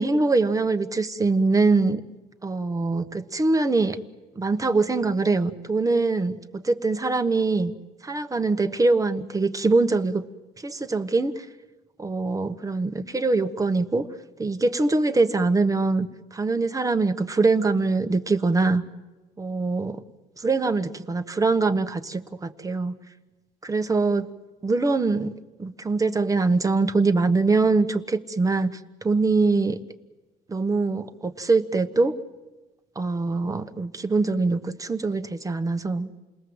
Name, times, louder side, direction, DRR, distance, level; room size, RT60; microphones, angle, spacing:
voice 1, 0.0-2.0 2.4-4.0 4.4-7.7 8.0-10.2 10.6-11.4 12.0-14.1 14.4-18.8 19.4-20.0 20.4-23.0 23.6-24.3 24.6-25.3 25.6-29.8 30.5-32.2 32.9-36.1, right 3 dB, 20° right, 9 dB, 1.2 m, -23 dB
29.0 x 20.0 x 7.9 m, 1.1 s
cardioid pair, 110°, 17 cm